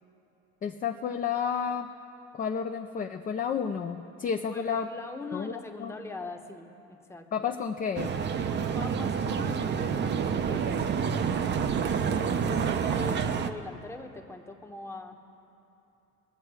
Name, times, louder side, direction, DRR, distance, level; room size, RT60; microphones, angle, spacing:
voice 1, 0.6-1.9 2.3-4.9 5.3-5.9 7.3-8.2, left 7 dB, 25° left, 4 dB, 0.5 m, -31 dB
voice 2, 4.5-7.5 8.5-10.9 12.4-15.2, left 2 dB, 5° left, 3 dB, 0.9 m, -41 dB
sound 1, 8.0-13.5, right 6 dB, 30° right, 0.6 m, -28 dB
21.5 x 7.8 x 4.8 m, 3.0 s
supercardioid pair, 115°, 35 cm